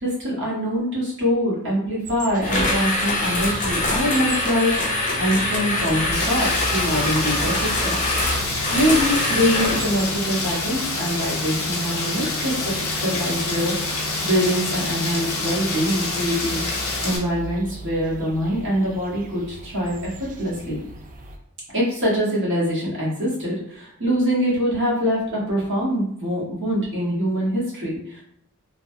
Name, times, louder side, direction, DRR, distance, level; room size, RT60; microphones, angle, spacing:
voice 1, 0.0-7.9 8.7-13.7 14.2-20.1 20.4-20.8 21.7-28.2, equal, 60° right, -6 dB, 1.2 m, -24 dB
sound 1, 2.0-21.4, right 1 dB, 35° right, 0.3 m, -36 dB
sound 2, 2.4-10.0, left 2 dB, 35° left, 0.6 m, -24 dB
Rain, 6.1-17.2, left 3 dB, 75° left, 0.7 m, -27 dB
3.1 x 2.1 x 2.6 m, 0.70 s
head